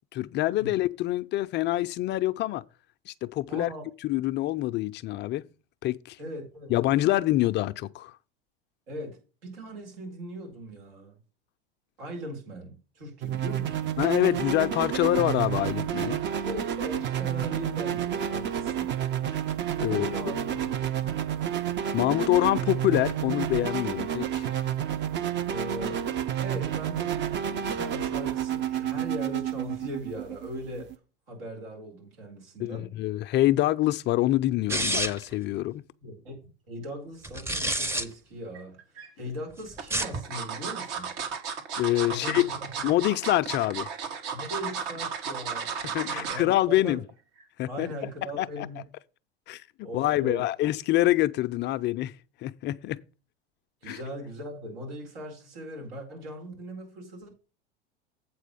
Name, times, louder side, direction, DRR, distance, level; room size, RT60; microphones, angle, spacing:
voice 1, 0.1-2.6 3.1-3.7 4.0-5.4 5.8-6.2 6.7-8.1 14.0-16.2 19.8-20.1 21.9-24.5 32.6-35.8 41.8-42.4 42.8-43.9 45.9-47.0 47.6-47.9 48.4-48.5 49.5-49.6 49.9-52.1 52.4-53.0 53.9-54.0, left 15 dB, 40° left, 0.5 m, -26 dB
voice 2, 3.5-3.8 6.2-6.8 8.9-11.2 12.0-13.9 16.4-18.9 19.9-21.2 25.5-31.0 31.3-32.9 36.0-36.3 36.7-41.1 42.1-42.8 44.3-47.0 47.7-48.8 49.8-50.4 53.8-57.3, equal, 80° right, 4.4 m, -39 dB
sound 1, 13.2-31.0, right 9 dB, 40° right, 0.9 m, -30 dB
sound 2, 34.7-35.3 37.2-38.0 39.8-40.2, right 1 dB, 10° right, 0.8 m, -28 dB
sound 3, 38.5-39.1 39.8-46.5 46.9-47.1 47.4-47.5, right 6 dB, 60° right, 1.9 m, -34 dB
8.3 x 4.4 x 6.9 m
hypercardioid pair, 100°, 29 cm